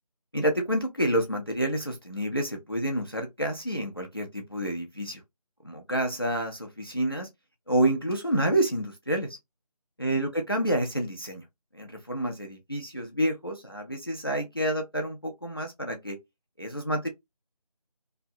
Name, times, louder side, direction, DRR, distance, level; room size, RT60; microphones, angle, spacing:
voice 1, 0.3-5.2 5.6-7.3 7.7-9.4 10.0-11.4 11.7-16.2 16.6-17.1, right 1 dB, 35° left, 0.4 m, -28 dB
2.7 x 2.0 x 2.4 m
figure-of-eight pair, 180°, 20 cm